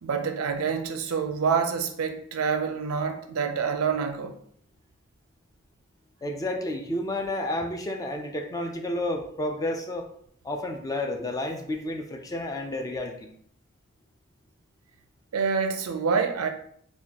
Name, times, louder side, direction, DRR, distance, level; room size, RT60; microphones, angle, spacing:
voice 1, 0.0-4.3 15.3-16.5, right 6 dB, 90° right, 0.4 m, -27 dB
voice 2, 6.2-10.1 10.4-13.3, left 1 dB, 15° left, 0.4 m, -31 dB
4.1 x 2.2 x 2.9 m
head